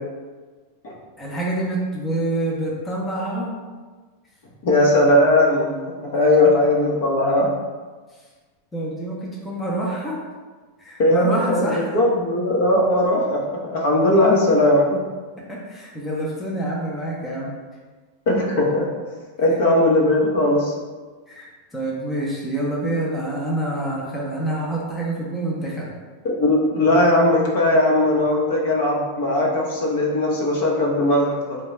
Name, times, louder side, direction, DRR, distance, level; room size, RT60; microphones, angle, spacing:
voice 1, 1.2-3.5 8.1-8.2 8.7-10.2 10.8-11.9 15.5-17.5 21.3-25.9, right 1 dB, 10° left, -5 dB, 0.5 m, -26 dB
voice 2, 4.6-5.7 6.0-7.5 11.0-13.4 13.7-15.0 18.3-18.9 19.4-20.7 26.2-31.6, left 1 dB, 60° left, -2 dB, 0.8 m, -18 dB
3.8 x 2.2 x 3.2 m, 1.4 s
supercardioid pair, 155°, 0 cm